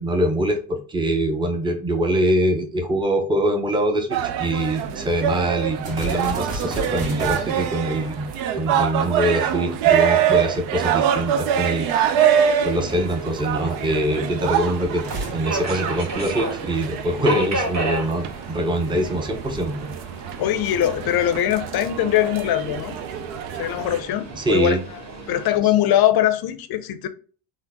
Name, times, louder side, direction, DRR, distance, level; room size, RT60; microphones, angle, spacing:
voice 1, 0.0-8.3 8.6-11.9 12.6-15.0 15.3-19.9 24.4-24.8, right 1 dB, 10° right, 0.6 m, -23 dB
sound 1, 4.1-24.0, right 9 dB, 75° right, 0.6 m, -25 dB
sound 2, 5.8-9.3 15.0-17.1, right 1 dB, 55° right, 1.5 m, -33 dB
Subway metro underground, 12.6-25.6, right 2 dB, 35° right, 1.1 m, -34 dB
voice 2, 20.4-23.0 23.5-25.0 25.3-27.1, left 12 dB, 50° left, 0.6 m, -21 dB
3.7 x 2.1 x 3.4 m
supercardioid pair, 85°, 49 cm